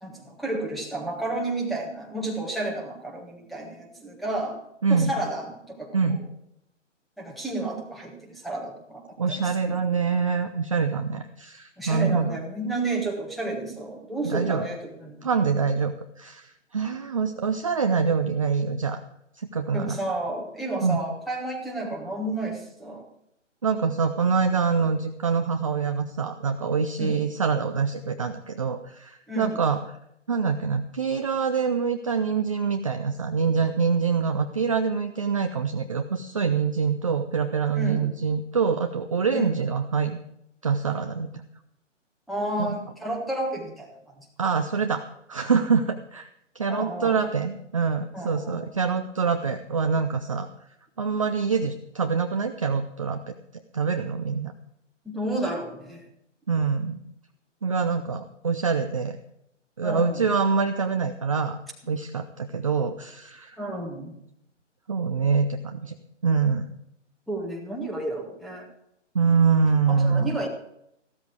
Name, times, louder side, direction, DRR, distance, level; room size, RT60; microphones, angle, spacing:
voice 1, 0.0-4.6 4.9-6.2 7.2-9.0 9.4-9.8 11.8-15.3 19.7-23.0 27.0-27.3 29.3-29.6 37.7-38.1 39.3-39.5 42.3-44.3 46.7-47.2 48.1-48.6 55.0-56.0 59.8-60.3 63.6-64.2 67.3-68.7 69.9-70.5, right 2 dB, ahead, 0 dB, 1.4 m, -31 dB
voice 2, 4.8-5.1 5.9-6.2 9.2-12.4 14.2-14.7 15.2-19.0 19.4-20.0 20.8-21.0 23.6-29.8 30.3-40.2 40.6-41.3 42.6-42.8 44.4-46.3 46.5-50.5 51.0-54.5 56.5-57.0 57.6-59.2 59.8-61.6 61.9-63.6 64.9-65.9 66.2-66.7 69.1-70.4, right 5 dB, 25° right, 6 dB, 0.6 m, -25 dB
15.0 x 13.0 x 4.7 m, 0.78 s
figure-of-eight pair, 135°, 37 cm